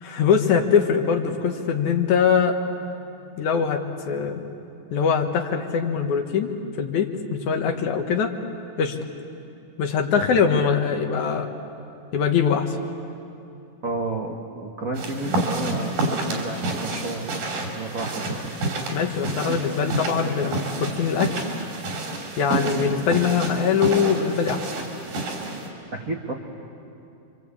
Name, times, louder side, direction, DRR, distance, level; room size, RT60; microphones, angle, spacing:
voice 1, 0.0-2.6 3.4-4.4 4.9-6.5 6.8-8.3 8.8-9.0 9.8-11.5 12.1-12.8 18.9-21.5 22.4-24.7, left 6 dB, 65° left, 5 dB, 2.5 m, -22 dB
voice 2, 13.8-18.5 19.5-20.5 25.9-26.3, right 3 dB, 60° right, 1 dB, 0.8 m, -32 dB
sound 1, 14.9-25.7, right 2 dB, 90° right, 5.1 m, -29 dB
28.5 x 25.0 x 8.5 m, 2.7 s
omnidirectional pair, 4.1 m